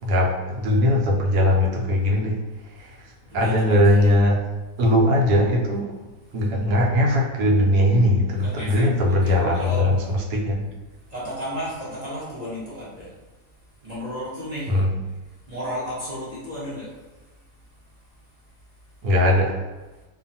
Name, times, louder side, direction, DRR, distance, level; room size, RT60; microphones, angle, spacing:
voice 1, 0.0-4.4 4.8-5.9 6.3-10.6 14.7-14.9 19.0-19.6, left 1 dB, 80° right, -1 dB, 1.2 m, -20 dB
voice 2, 3.3-4.1 8.4-9.8 11.1-13.1 13.8-14.7 15.5-16.9, equal, 35° right, -9 dB, 0.7 m, -33 dB
2.5 x 2.4 x 2.6 m, 1.2 s
omnidirectional pair, 1.7 m